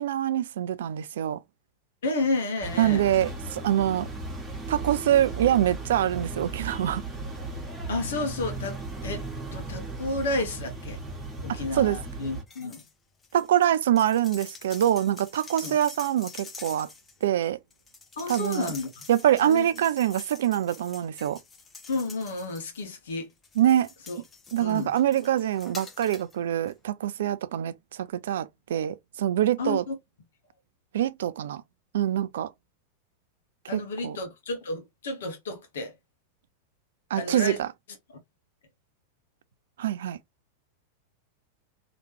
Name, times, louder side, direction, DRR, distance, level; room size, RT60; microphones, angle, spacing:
voice 1, 0.0-1.4 2.8-4.1 4.7-7.0 11.5-12.0 13.3-16.9 17.2-17.6 18.3-18.7 19.1-21.4 23.6-23.9 24.5-29.8 30.9-31.6 31.9-32.5 33.7-34.2 37.1-37.7 39.8-40.2, right 11 dB, 60° right, 0.3 m, -25 dB
voice 2, 2.0-3.0 7.9-8.8 9.0-11.0 11.4-12.8 15.6-15.8 18.2-19.1 19.4-19.7 21.9-23.3 24.1-24.2 24.6-24.9 29.6-30.0 33.7-35.9 37.2-37.6, left 2 dB, 60° left, 1.1 m, -31 dB
sound 1, 2.6-12.4, right 2 dB, 15° right, 1.5 m, -36 dB
sound 2, 12.5-12.9 13.2-23.0 23.4-26.4 26.7-26.8, left 4 dB, 20° left, 0.8 m, -46 dB
3.2 x 2.9 x 3.0 m
figure-of-eight pair, 90°, 0 cm